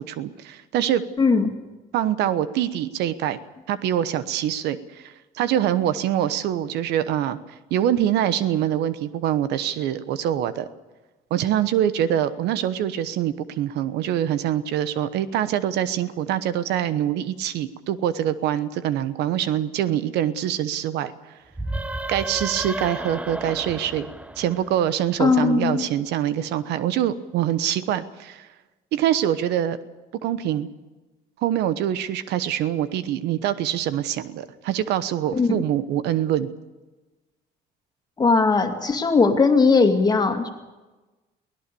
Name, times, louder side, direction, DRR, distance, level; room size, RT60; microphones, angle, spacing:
voice 1, 0.0-1.0 1.9-3.4 3.7-7.4 7.7-10.7 11.3-21.1 22.1-24.1 24.4-28.5 28.9-29.8 30.2-30.7 31.4-36.5, right 11 dB, 85° right, 14 dB, 1.1 m, -24 dB
voice 2, 1.2-1.5 25.2-25.9 35.3-35.6 38.2-40.5, left 4 dB, 25° left, 5 dB, 2.4 m, -19 dB
sound 1, 21.5-25.1, right 1 dB, 10° right, 0.9 m, -32 dB
23.0 x 17.0 x 7.0 m, 1.2 s
cardioid pair, 110°, 17 cm